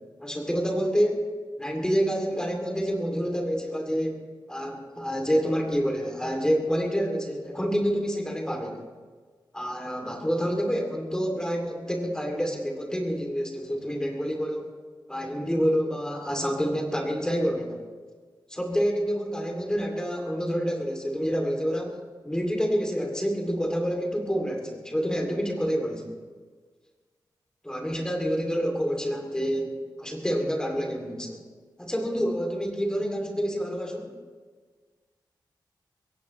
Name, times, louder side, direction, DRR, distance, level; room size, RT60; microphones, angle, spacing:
voice 1, 0.2-1.3 1.6-4.2 4.5-8.8 9.5-14.7 15.1-17.8 18.5-22.0 22.2-26.2 27.6-31.4 31.8-34.1, equal, 10° left, 2 dB, 2.7 m, -28 dB
22.0 x 16.5 x 3.2 m, 1.5 s
wide cardioid pair, 140°, 8 cm